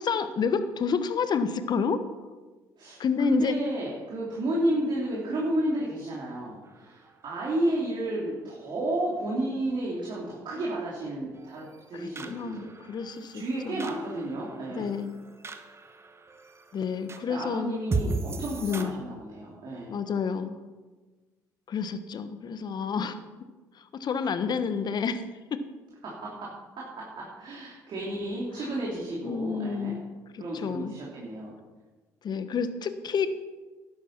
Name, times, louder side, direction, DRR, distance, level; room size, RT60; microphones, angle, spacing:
voice 1, 0.0-2.0 3.0-3.6 11.9-13.9 14.7-15.2 16.7-17.8 18.6-19.0 19.9-20.6 21.7-23.2 23.9-25.2 25.5-25.6 29.2-30.0 30.3-30.9 32.2-33.3, left 6 dB, 45° left, 11 dB, 1.1 m, -29 dB
voice 2, 2.8-12.7 13.3-14.9 17.3-20.0 26.0-26.5 27.0-30.0 30.4-31.5, right 1 dB, 50° right, -4 dB, 3.3 m, -32 dB
sound 1, 6.6-18.8, right 3 dB, 25° right, 1.4 m, -39 dB
11.5 x 9.5 x 6.0 m, 1.3 s
hypercardioid pair, 55°, 10 cm